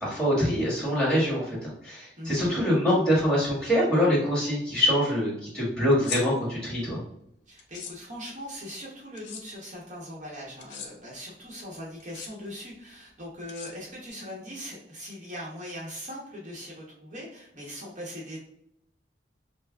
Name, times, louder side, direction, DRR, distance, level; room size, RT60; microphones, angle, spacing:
voice 1, 0.0-7.0, equal, 5° left, -7 dB, 1.5 m, -24 dB
sound 1, 5.9-6.2 7.6-7.9 9.2-9.4 10.6-10.9 12.0-12.3 13.5-14.1, left 5 dB, 85° left, 0.6 m, -37 dB
voice 2, 7.5-18.4, equal, 45° right, -4 dB, 0.9 m, -40 dB
5.6 x 2.1 x 2.3 m, 0.71 s
head